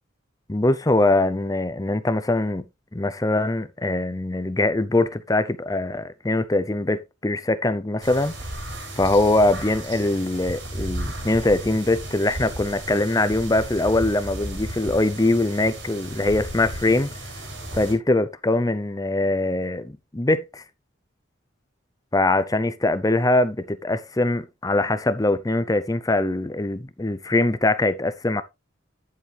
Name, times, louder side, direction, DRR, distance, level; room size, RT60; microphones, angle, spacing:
voice 1, 0.5-2.6 2.9-8.3 9.0-17.1 17.7-20.6 22.1-28.4, left 2 dB, 20° left, 0.6 m, -22 dB
sound 1, 8.0-17.9, right 1 dB, 70° right, 5.1 m, -34 dB
10.5 x 7.2 x 3.3 m
head